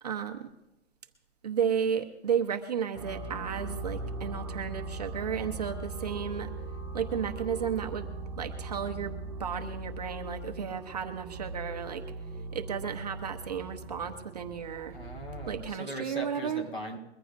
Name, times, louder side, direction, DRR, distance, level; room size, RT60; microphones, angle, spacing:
voice 1, 0.0-0.5 1.4-6.5 6.9-8.1 8.4-12.0 12.5-15.0 15.5-16.6, right 7 dB, 35° right, 4 dB, 0.9 m, -33 dB
sound 1, 2.9-15.6, right 3 dB, 15° right, 5.0 m, -40 dB
voice 2, 14.9-17.0, equal, 50° left, 1 dB, 5.0 m, -39 dB
22.5 x 15.0 x 2.6 m, 0.91 s
hypercardioid pair, 180°, 34 cm